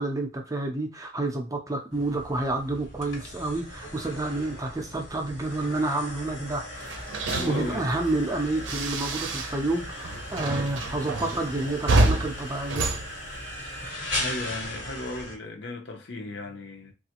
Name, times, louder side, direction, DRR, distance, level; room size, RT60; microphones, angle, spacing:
voice 1, 0.0-7.0 7.4-13.0, right 2 dB, 15° right, 0.5 m, -29 dB
sound 1, 1.9-15.4, left 1 dB, 75° left, 1.2 m, -38 dB
sound 2, 6.8-9.8 10.0-13.9, right 2 dB, 70° right, 0.6 m, -28 dB
voice 2, 7.3-7.9 14.2-16.9, left 2 dB, 60° left, 0.6 m, -35 dB
3.2 x 2.4 x 2.9 m
head